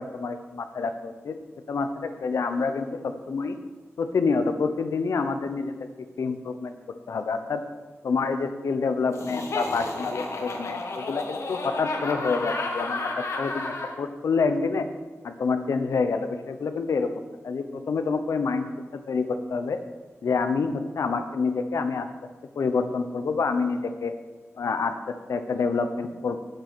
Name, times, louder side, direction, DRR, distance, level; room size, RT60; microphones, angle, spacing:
voice 1, 0.0-1.4 1.7-3.6 4.0-5.9 6.2-6.7 7.1-7.6 8.0-13.1 13.4-14.9 15.2-17.1 17.4-18.7 19.1-19.8 20.2-22.1 22.6-24.1 24.6-26.4, left 4 dB, 85° left, 8 dB, 0.9 m, -27 dB
Laughter, 9.1-13.9, left 2 dB, 70° left, 1.4 m, -32 dB
8.8 x 7.9 x 6.2 m, 1.3 s
wide cardioid pair, 150°, 5 cm